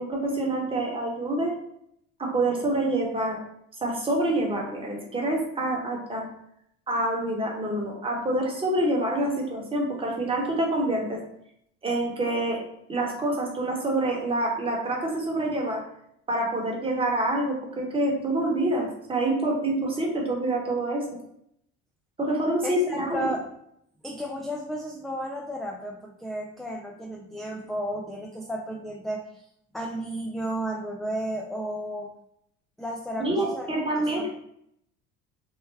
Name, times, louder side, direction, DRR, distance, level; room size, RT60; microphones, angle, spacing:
voice 1, 0.0-1.5 2.2-3.4 3.8-6.3 6.9-11.2 11.8-12.6 12.9-15.8 16.3-21.0 22.2-23.3 33.2-34.3, right 1 dB, 20° right, -1 dB, 1.0 m, -26 dB
voice 2, 22.6-23.4 24.0-29.4 29.7-32.1 32.8-33.7 33.9-34.3, equal, ahead, -1 dB, 0.3 m, -33 dB
3.3 x 2.1 x 3.3 m, 0.72 s
supercardioid pair, 100°, 29 cm